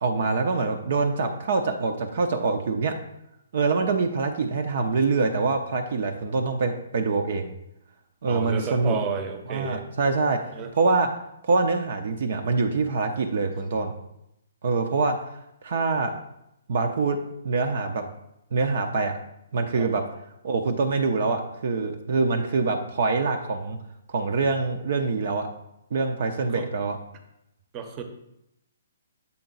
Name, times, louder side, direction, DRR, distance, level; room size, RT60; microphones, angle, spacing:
voice 1, 0.0-2.9 3.5-7.5 8.2-9.0 9.5-10.4 10.8-11.1 11.4-13.9 14.6-15.1 15.6-16.1 16.7-17.2 17.4-18.0 18.5-19.1 19.5-20.0 20.4-23.8 24.1-25.5 25.9-27.0, right 4 dB, 55° right, 5 dB, 0.6 m, -25 dB
voice 2, 8.3-9.8 10.5-10.7 19.7-19.9 26.5-26.7 27.7-28.0, right 6 dB, 25° right, 6 dB, 0.8 m, -31 dB
7.1 x 3.8 x 3.9 m, 0.83 s
figure-of-eight pair, 130°, 0 cm